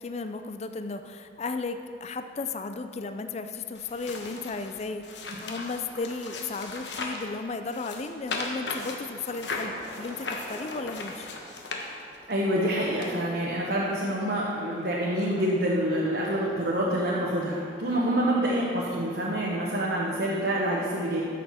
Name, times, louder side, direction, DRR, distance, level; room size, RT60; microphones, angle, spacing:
voice 1, 0.0-11.3 17.9-18.2, left 3 dB, 35° left, 8 dB, 0.4 m, -35 dB
sound 1, 3.7-7.3 7.7-12.3 13.0-13.1, left 3 dB, 65° left, 1.1 m, -37 dB
sound 2, 8.0-19.3, equal, 25° right, 2.0 m, -47 dB
voice 2, 12.3-21.2, right 1 dB, 60° right, -5 dB, 1.2 m, -27 dB
13.5 x 6.8 x 4.3 m, 2.3 s
head